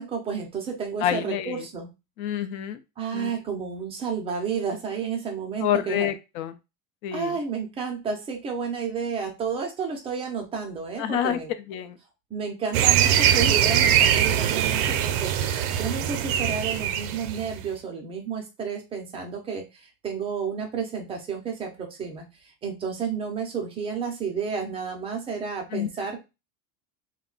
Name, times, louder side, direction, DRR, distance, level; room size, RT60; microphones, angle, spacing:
voice 1, 0.0-1.9 3.0-6.1 7.1-11.5 12.3-22.2 22.6-26.2, right 6 dB, 15° right, 1 dB, 0.3 m, -31 dB
voice 2, 1.0-1.7 2.2-2.8 3.1-3.4 5.6-6.6 7.0-7.4 11.0-11.4 11.7-12.0 25.7-25.9, left 10 dB, 65° left, 10 dB, 0.6 m, -28 dB
sound 1, 12.7-17.6, right 10 dB, 70° right, 0.5 m, -22 dB
2.2 x 2.1 x 3.7 m, 0.26 s
supercardioid pair, 140°, 46 cm